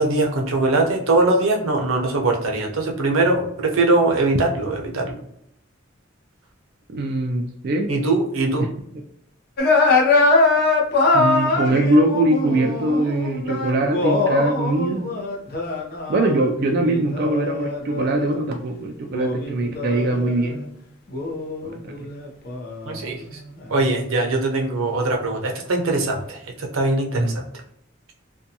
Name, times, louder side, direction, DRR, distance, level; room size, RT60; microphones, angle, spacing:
voice 1, 0.0-5.2 7.9-8.7 22.9-23.2 23.7-27.3, right 2 dB, 90° right, 1 dB, 0.6 m, -21 dB
voice 2, 6.9-7.9 11.1-15.1 16.1-20.7 21.6-22.0 24.7-24.8 27.1-27.4, right 2 dB, 50° right, 2 dB, 0.3 m, -22 dB
sound 1, 9.6-18.4 19.1-20.6 21.1-24.0, left 3 dB, 50° left, 0.6 m, -23 dB
2.6 x 2.2 x 2.7 m, 0.73 s
head